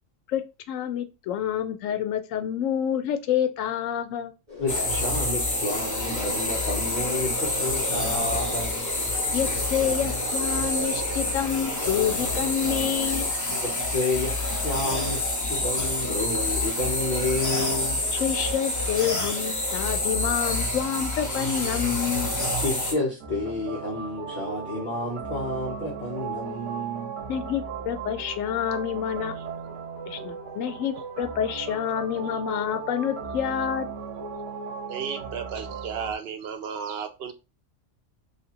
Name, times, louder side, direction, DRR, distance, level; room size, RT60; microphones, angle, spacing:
voice 1, 0.3-4.3 9.3-13.3 18.1-22.3 27.3-29.3 30.1-33.9, left 9 dB, 85° left, 0.9 m, -28 dB
sound 1, 4.5-13.3, left 3 dB, 35° right, 1.5 m, -39 dB
voice 2, 4.6-8.8 13.6-18.0 22.6-27.1, left 2 dB, 45° left, 0.9 m, -30 dB
sound 2, 4.7-22.9, left 1 dB, 20° left, 0.5 m, -27 dB
sound 3, 23.2-36.1, right 5 dB, 80° right, 1.2 m, -36 dB
voice 3, 34.9-37.3, right 7 dB, 60° right, 0.7 m, -34 dB
3.3 x 2.8 x 2.8 m
omnidirectional pair, 1.3 m